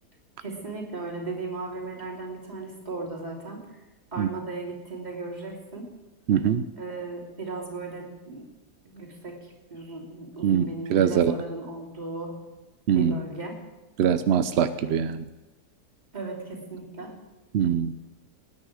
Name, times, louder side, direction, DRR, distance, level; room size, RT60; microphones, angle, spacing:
voice 1, 0.4-3.6 4.1-5.9 6.8-8.5 8.8-12.3 12.9-13.6 16.1-17.1, right 3 dB, 25° right, -3 dB, 3.2 m, -36 dB
voice 2, 6.3-6.6 10.4-11.4 12.9-13.2 14.0-15.2 17.5-17.9, right 8 dB, 70° right, 11 dB, 0.6 m, -23 dB
20.0 x 9.7 x 4.9 m, 1.1 s
omnidirectional pair, 1.7 m